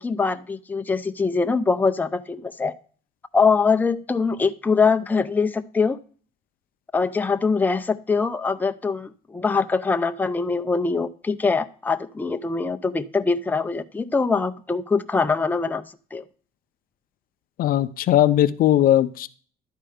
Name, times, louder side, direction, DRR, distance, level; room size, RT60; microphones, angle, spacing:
voice 1, 0.0-2.7 3.3-6.0 6.9-15.8 16.1-16.2, left 4 dB, 10° left, 9 dB, 0.5 m, -23 dB
voice 2, 17.6-19.3, left 12 dB, 60° left, 13 dB, 0.5 m, -19 dB
11.5 x 4.5 x 4.9 m, 0.43 s
cardioid pair, 110°, 17 cm